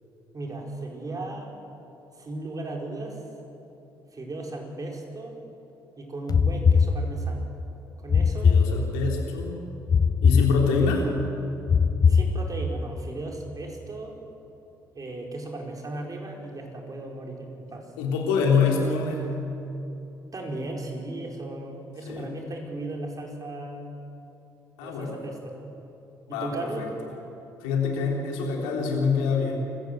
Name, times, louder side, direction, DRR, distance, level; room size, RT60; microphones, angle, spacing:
voice 1, 0.3-1.5 2.2-3.2 4.1-5.4 6.0-7.5 8.0-8.6 12.1-14.2 14.9-17.9 20.3-23.9 24.8-25.6 26.3-26.9, right 2 dB, 35° right, 1 dB, 4.8 m, -36 dB
sound 1, 6.3-7.5 8.1-9.3 9.9-11.1 11.7-12.8, left 5 dB, 40° left, 1.1 m, -21 dB
voice 2, 8.4-9.6 10.2-11.1 18.0-19.3 22.1-22.3 24.8-25.2 26.3-26.9 27.6-29.7, left 5 dB, 80° left, 0 dB, 3.7 m, -25 dB
26.0 x 15.0 x 7.9 m, 2.9 s
hypercardioid pair, 50°, 10 cm